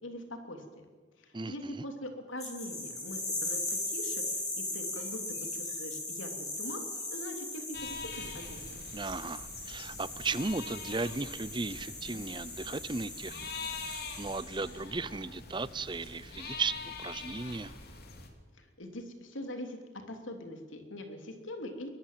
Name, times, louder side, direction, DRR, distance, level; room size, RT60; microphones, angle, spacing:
voice 1, 0.0-0.8 1.2-6.8 7.1-8.9 18.6-19.8 20.1-21.9, left 1 dB, 80° left, 5 dB, 3.1 m, -43 dB
voice 2, 1.3-1.8 8.9-13.4 13.8-17.7, right 3 dB, 25° right, 17 dB, 0.6 m, -36 dB
sound 1, 2.4-14.7, left 2 dB, 20° left, 7.8 m, -39 dB
sound 2, 7.7-18.3, left 4 dB, 50° left, 3.0 m, -44 dB
23.0 x 19.5 x 7.6 m, 1.4 s
head